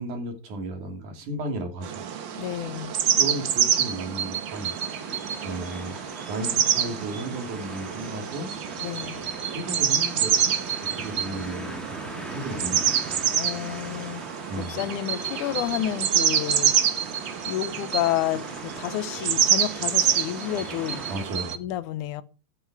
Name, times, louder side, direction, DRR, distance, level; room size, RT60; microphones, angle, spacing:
voice 1, 0.0-2.0 3.2-4.7 5.4-6.0 6.3-8.5 9.5-10.5 10.9-11.8 12.3-13.0 14.5-14.8 21.1-21.6, right 1 dB, 65° right, 4.1 m, -34 dB
sound 1, 1.8-21.6, right 8 dB, 90° right, 1.0 m, -27 dB
voice 2, 2.4-2.9 8.8-9.2 13.3-14.2 14.6-16.7 17.4-21.0 21.6-22.2, left 13 dB, 75° left, 2.2 m, -30 dB
sound 2, 4.5-21.3, equal, ahead, 1.9 m, -42 dB
14.0 x 9.5 x 4.8 m
omnidirectional pair, 3.9 m